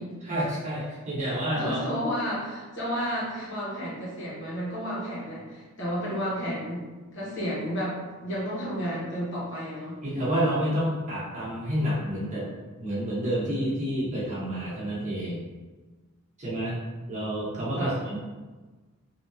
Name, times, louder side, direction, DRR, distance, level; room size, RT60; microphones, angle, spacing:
voice 1, 0.2-1.8 10.0-12.5 12.8-15.5 16.4-16.8 17.1-18.2, equal, 35° right, -8 dB, 1.1 m, -29 dB
voice 2, 1.3-6.8 7.1-10.0 17.8-18.0, equal, 55° left, -8 dB, 1.4 m, -32 dB
3.5 x 2.8 x 2.7 m, 1.3 s
head